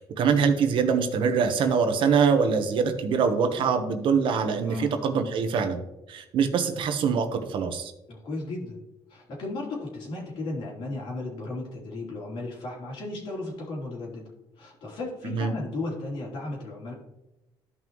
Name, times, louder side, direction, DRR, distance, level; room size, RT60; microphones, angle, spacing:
voice 1, 0.2-5.8 6.1-7.9 15.2-15.5, right 6 dB, 70° right, 7 dB, 1.1 m, -24 dB
voice 2, 4.6-4.9 8.1-8.8 9.1-14.3 14.6-16.9, left 2 dB, 70° left, -3 dB, 3.3 m, -35 dB
13.0 x 5.5 x 3.1 m, 0.97 s
cardioid pair, 105°, 9 cm